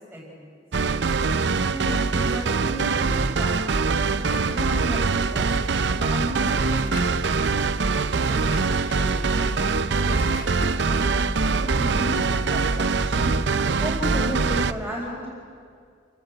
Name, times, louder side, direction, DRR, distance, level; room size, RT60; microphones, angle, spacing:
voice 1, 0.1-0.4 1.6-3.6 4.3-7.0 7.9-9.5 9.9-10.2 10.6-13.4 13.8-15.3, right 1 dB, 5° right, -7 dB, 4.3 m, -34 dB
sound 1, 0.7-14.7, right 4 dB, 75° right, 0.6 m, -23 dB
Drawer open or close, 4.2-5.2 6.3-7.4 8.2-10.9, left 2 dB, 50° left, 1.2 m, -42 dB
28.0 x 16.0 x 8.0 m, 2.3 s
head